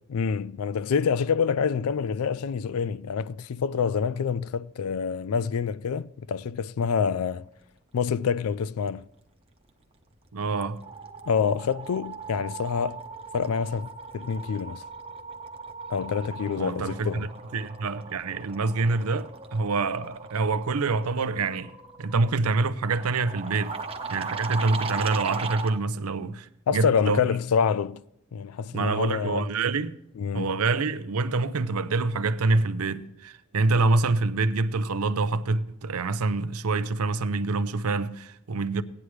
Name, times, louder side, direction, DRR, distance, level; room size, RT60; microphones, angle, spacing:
voice 1, 0.1-7.5 7.9-9.0 11.3-13.0 13.3-14.8 15.9-17.2 26.7-28.0 28.3-29.5 30.2-30.6, left 6 dB, 80° left, 0.4 m, -27 dB
sound 1, 10.0-10.3 10.5-25.8, right 4 dB, 25° right, 0.9 m, -38 dB
voice 2, 10.3-10.8 16.6-23.7 24.1-27.2 28.7-29.9 30.3-38.8, right 3 dB, 85° right, 0.6 m, -26 dB
17.0 x 9.9 x 3.2 m
head